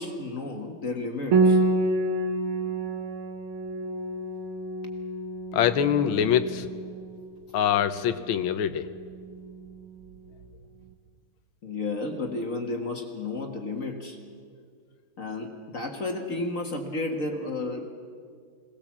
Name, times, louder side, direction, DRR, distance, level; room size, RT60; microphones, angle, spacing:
voice 1, 0.0-1.6 11.6-14.2 15.2-17.9, left 2 dB, 40° left, 3 dB, 1.7 m, -32 dB
Piano, 1.3-10.6, right 3 dB, 85° right, 2.1 m, -29 dB
voice 2, 5.5-6.6 7.5-8.9, left 9 dB, 80° left, 11 dB, 1.6 m, -24 dB
22.0 x 18.5 x 7.3 m, 2.1 s
omnidirectional pair, 2.2 m